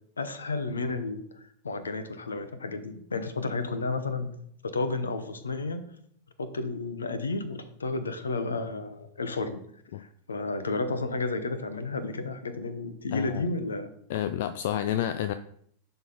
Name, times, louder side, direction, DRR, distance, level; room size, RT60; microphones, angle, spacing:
voice 1, 0.2-4.3 4.6-5.8 6.4-9.6 10.0-13.9, left 3 dB, 75° left, 11 dB, 0.8 m, -32 dB
voice 2, 13.1-13.5 14.1-15.3, left 11 dB, 55° left, 11 dB, 0.3 m, -29 dB
10.5 x 3.9 x 4.2 m, 0.67 s
figure-of-eight pair, 90°, 0 cm